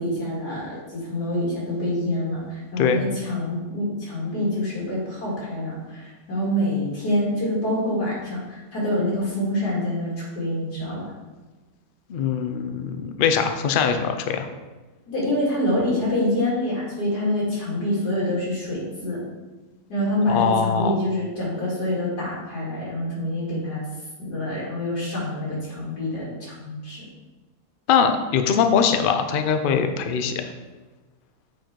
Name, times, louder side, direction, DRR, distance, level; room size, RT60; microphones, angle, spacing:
voice 1, 0.0-11.1 15.1-19.2 19.9-23.8 24.2-27.0, left 1 dB, 85° left, -6 dB, 3.1 m, -26 dB
voice 2, 12.1-14.5 20.3-20.9 27.9-30.4, left 7 dB, 65° left, 7 dB, 0.5 m, -22 dB
7.1 x 4.5 x 4.6 m, 1.2 s
omnidirectional pair, 1.7 m